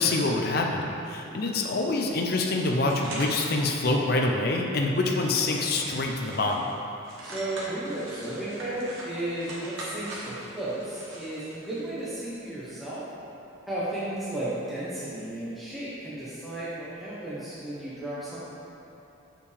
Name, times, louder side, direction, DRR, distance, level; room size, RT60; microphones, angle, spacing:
voice 1, 0.0-6.7, left 2 dB, 50° left, 1 dB, 0.5 m, -26 dB
sound 1, 1.9-3.4 3.8-3.9 4.5-4.6 5.0-6.7 7.0-12.1, right 1 dB, 70° right, 1.4 m, -42 dB
voice 2, 7.2-13.0 13.7-18.4, right 1 dB, ahead, -11 dB, 0.9 m, -34 dB
6.9 x 5.6 x 3.3 m, 2.9 s
head